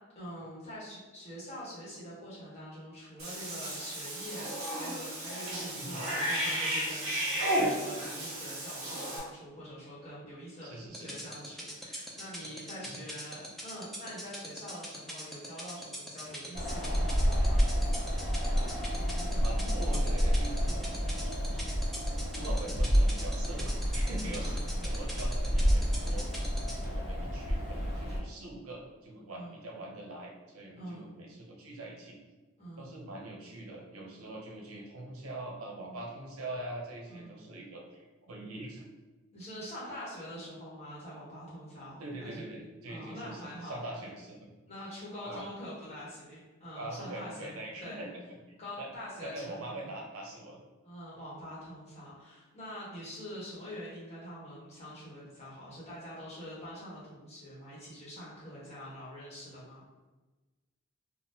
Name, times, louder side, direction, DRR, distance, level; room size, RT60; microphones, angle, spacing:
voice 1, 0.1-17.7 20.7-21.0 24.4-24.8 29.3-29.6 30.8-31.1 32.6-33.0 37.1-37.4 39.3-42.5 42.9-43.9 44.6-47.5 47.8-48.0 48.6-49.8 50.8-59.8, equal, 30° left, -8 dB, 1.1 m, -45 dB
Cat / Bathtub (filling or washing), 3.2-9.2, right 1 dB, 65° right, 1.0 m, -33 dB
voice 2, 10.6-11.3 12.9-13.0 16.3-16.4 18.8-21.6 22.1-32.2 32.8-38.9 42.0-44.5 45.2-45.5 46.7-48.2 48.8-48.9 49.2-50.6, right 1 dB, 85° right, 0 dB, 0.7 m, -43 dB
sound 1, 10.9-26.8, equal, ahead, 0.3 m, -41 dB
Wind, 16.5-28.2, equal, 50° left, 0.8 m, -29 dB
3.5 x 2.2 x 2.7 m, 1.2 s
head